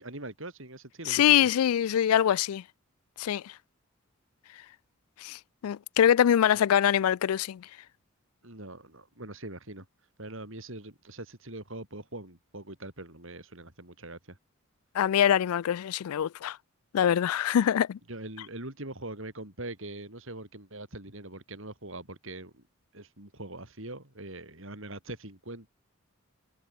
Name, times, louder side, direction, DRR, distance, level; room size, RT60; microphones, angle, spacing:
voice 1, 0.0-1.5 8.4-9.8 10.2-14.4 18.1-22.6 22.9-25.7, right 2 dB, 65° right, 5.2 m, -42 dB
voice 2, 1.1-2.6 3.2-3.5 5.2-7.7 14.9-16.6 16.9-18.0, left 9 dB, 90° left, 0.3 m, -24 dB
head